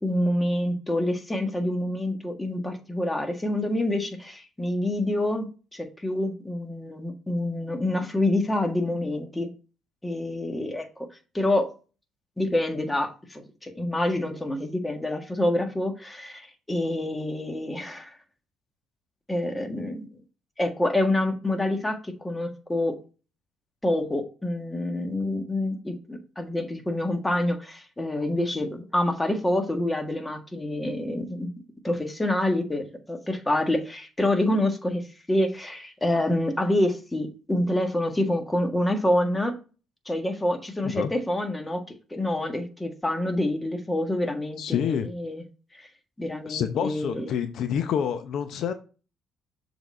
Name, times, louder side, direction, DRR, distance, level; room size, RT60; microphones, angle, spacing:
voice 1, 0.0-9.5 10.0-11.1 11.3-11.7 12.4-18.2 19.3-20.1 20.6-22.9 23.8-31.5 31.8-35.0 35.3-39.5 40.0-41.8 42.1-45.4 45.7-45.9 46.2-47.3, left 1 dB, 15° left, 1.6 m, -27 dB
voice 2, 44.6-45.1 46.5-48.7, left 8 dB, 65° left, 0.7 m, -27 dB
6.8 x 4.0 x 4.2 m
supercardioid pair, 70°, 0 cm